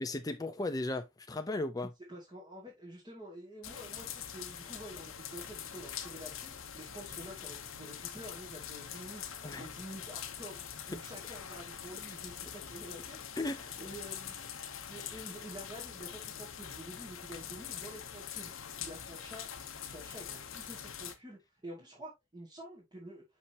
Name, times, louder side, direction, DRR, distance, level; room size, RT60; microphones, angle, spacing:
voice 1, 0.0-1.9 9.4-9.6 13.4-13.7, left 2 dB, 20° left, 0.6 m, -36 dB
voice 2, 2.1-9.2 9.6-10.6 10.9-13.2 13.8-14.5 14.9-18.5 18.8-19.5 19.8-23.2, right 1 dB, 20° right, 2.2 m, -48 dB
sound 1, 3.6-21.2, left 8 dB, 85° left, 1.0 m, -44 dB
6.0 x 5.9 x 2.9 m
head